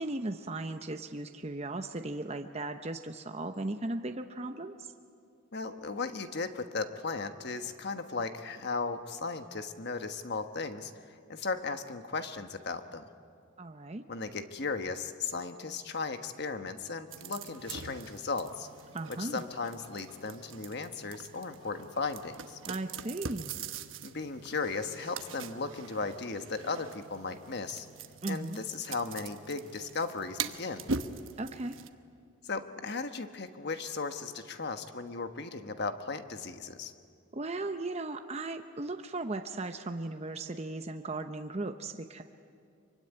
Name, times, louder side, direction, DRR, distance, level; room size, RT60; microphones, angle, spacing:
voice 1, 0.0-4.9 13.6-14.0 18.9-19.4 22.7-23.6 28.2-28.6 31.4-31.8 37.3-42.2, right 2 dB, 30° right, 6 dB, 0.8 m, -37 dB
voice 2, 5.5-10.9 11.3-13.1 14.1-18.7 19.1-22.6 24.0-27.9 28.2-30.9 32.4-36.9, left 4 dB, 55° left, 8 dB, 1.3 m, -36 dB
sound 1, 17.1-31.9, right 5 dB, 70° right, 1.1 m, -42 dB
25.0 x 24.0 x 9.9 m, 2.3 s
head